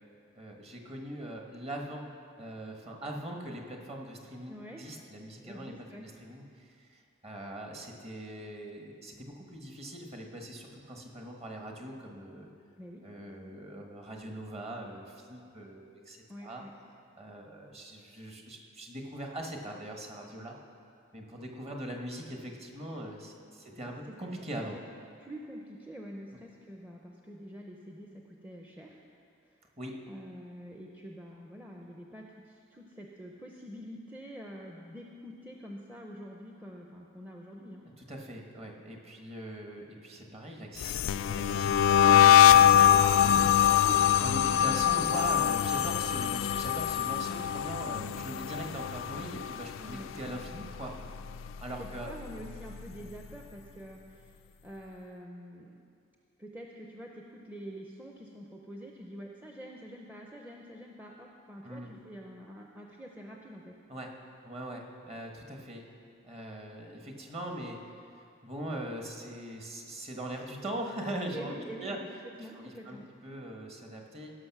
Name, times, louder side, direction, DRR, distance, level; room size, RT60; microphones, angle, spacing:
voice 1, 0.3-2.0 2.4-12.5 13.0-16.6 17.1-20.6 21.1-24.7 29.8-29.9 38.0-42.6 42.9-43.5 44.2-50.9 51.6-52.1 61.6-61.9 63.9-64.1 64.4-65.9 66.2-67.8 68.1-71.5 71.8-72.0 72.5-74.3, right 1 dB, 30° right, 1 dB, 1.3 m, -41 dB
voice 2, 4.5-4.9 5.4-6.1 12.8-13.0 16.3-16.7 24.0-24.4 24.7-24.8 25.2-29.0 29.4-29.5 30.1-37.9 42.5-43.1 43.6-44.1 46.3-46.4 49.8-50.1 51.8-55.7 56.4-63.8 71.3-72.0 72.4-73.1, equal, 10° right, -1 dB, 0.6 m, -46 dB
sound 1, 40.8-50.0 50.2-50.7 51.0-52.6, left 10 dB, 80° left, 0.3 m, -23 dB
16.5 x 6.2 x 6.0 m, 2.4 s
head